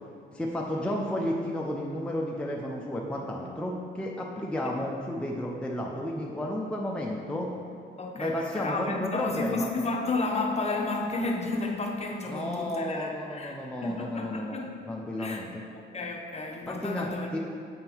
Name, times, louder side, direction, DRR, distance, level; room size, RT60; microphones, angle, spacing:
voice 1, 0.3-7.5 8.1-9.7 12.3-15.6 16.7-17.4, left 1 dB, 5° left, -2 dB, 0.6 m, -32 dB
voice 2, 8.0-14.7 15.2-15.4 15.7-17.3, left 3 dB, 30° left, 0 dB, 0.9 m, -32 dB
7.7 x 3.7 x 4.5 m, 2.3 s
cardioid pair, 90°, 20 cm